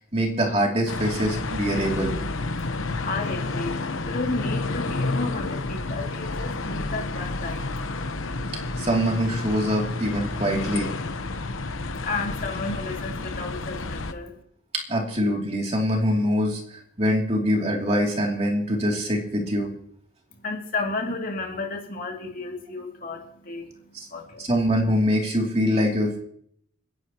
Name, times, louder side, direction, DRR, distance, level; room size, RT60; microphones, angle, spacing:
voice 1, 0.0-2.1 8.8-10.9 14.9-16.6 17.0-19.7 23.9-24.1 24.4-26.2, equal, 30° right, 0 dB, 2.8 m, -24 dB
sound 1, 0.9-14.1, left 3 dB, 80° left, 1.0 m, -30 dB
voice 2, 2.6-7.9 12.0-14.4 20.4-24.5, left 3 dB, 45° left, 1 dB, 2.6 m, -32 dB
29.5 x 11.0 x 3.0 m, 0.65 s
head